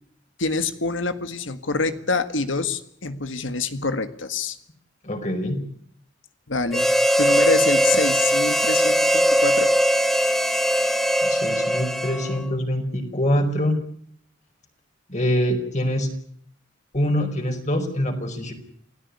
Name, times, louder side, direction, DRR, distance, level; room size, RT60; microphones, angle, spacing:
voice 1, 0.4-4.6 6.5-6.9 7.2-9.7, left 3 dB, 75° left, 10 dB, 1.8 m, -26 dB
voice 2, 5.0-5.6 11.2-13.8 15.1-16.1 16.9-18.5, equal, 40° left, 4 dB, 5.1 m, -24 dB
Harmonica, 6.7-12.5, equal, ahead, 1.4 m, -20 dB
28.0 x 17.5 x 9.8 m, 0.64 s
head